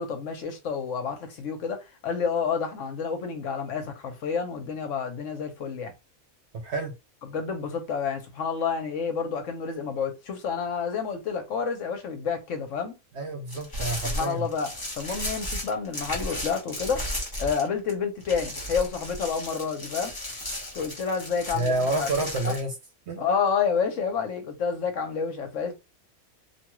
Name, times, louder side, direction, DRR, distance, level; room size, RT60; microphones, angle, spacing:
voice 1, 0.0-5.9 7.2-12.9 14.0-17.0 17.4-20.1 20.7-22.5 23.2-25.7, left 6 dB, 65° left, 1.0 m, -29 dB
voice 2, 13.1-14.4 21.5-22.7 23.1-23.2, right 2 dB, 65° right, 0.7 m, -28 dB
sound 1, 13.5-17.9 18.2-22.6, left 1 dB, 20° left, 0.7 m, -35 dB
2.6 x 2.3 x 2.9 m
omnidirectional pair, 1.5 m